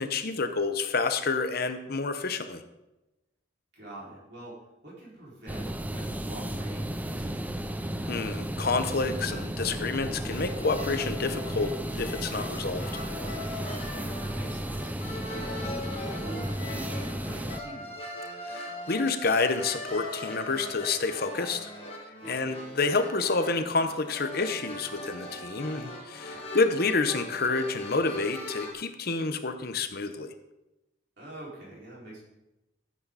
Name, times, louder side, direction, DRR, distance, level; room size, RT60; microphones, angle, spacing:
voice 1, 0.0-2.6 8.1-12.9 18.4-21.7 22.3-30.3, left 3 dB, 50° left, 8 dB, 0.8 m, -29 dB
voice 2, 3.7-4.5 4.8-7.5 13.8-14.9 15.4-17.9 22.2-22.4 26.3-26.5 31.2-32.2, right 1 dB, 55° right, -6 dB, 5.1 m, -45 dB
sound 1, 5.5-17.6, right 1 dB, 10° right, 0.5 m, -34 dB
sound 2, 10.3-28.7, left 1 dB, 30° left, 2.1 m, -40 dB
14.0 x 8.7 x 4.1 m, 0.96 s
head